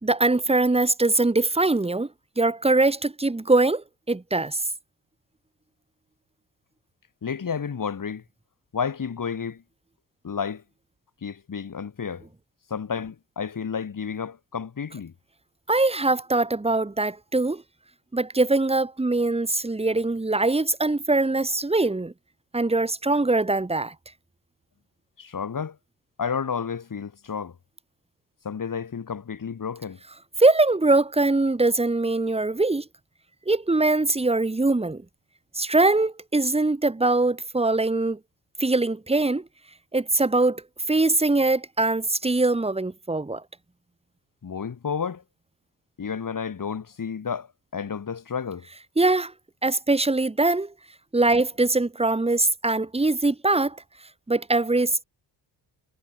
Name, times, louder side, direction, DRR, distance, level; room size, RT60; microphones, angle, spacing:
voice 1, 0.0-2.1 2.4-4.6 15.7-17.6 18.1-22.1 22.5-23.9 30.4-32.9 33.5-35.0 35.6-38.2 38.6-39.4 39.9-43.4 49.0-49.3 49.6-50.7 51.1-53.8 54.3-55.0, right 2 dB, 15° right, 1.9 m, -22 dB
voice 2, 7.2-8.2 8.7-9.6 10.2-10.6 11.2-12.2 12.7-15.1 25.2-25.8 26.2-27.5 28.4-30.0 44.4-45.2 46.0-47.5 47.7-48.6, left 6 dB, 45° left, 6.6 m, -31 dB
cardioid pair, 90°, 43 cm